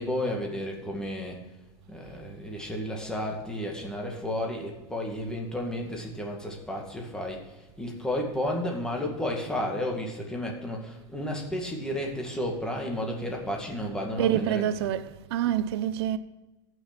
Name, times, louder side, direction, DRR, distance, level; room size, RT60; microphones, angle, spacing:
voice 1, 0.0-1.4 1.9-7.4 7.8-14.9, left 1 dB, 5° left, 2.1 m, -32 dB
voice 2, 14.2-16.2, right 11 dB, 65° right, 0.9 m, -27 dB
14.5 x 6.3 x 5.9 m
supercardioid pair, 150°, 15 cm